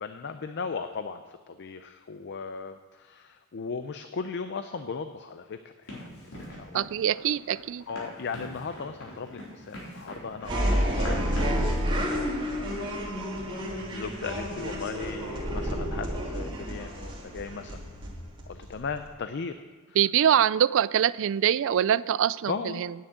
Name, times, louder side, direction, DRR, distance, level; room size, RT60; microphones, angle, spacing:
voice 1, 0.0-1.2 1.5-5.6 5.9-6.1 6.5-6.9 7.9-11.6 12.1-12.7 13.9-17.8 18.5-19.5 19.9-20.0 22.5-22.8, left 5 dB, 55° left, 9 dB, 0.5 m, -37 dB
Run, 5.9-11.7, equal, 80° left, 4.1 m, -42 dB
voice 2, 6.7-7.8 20.0-22.9, right 9 dB, 60° right, 19 dB, 0.3 m, -24 dB
sound 1, 10.4-19.1, equal, 25° right, 2.7 m, -30 dB
9.4 x 7.2 x 8.8 m, 1.5 s
head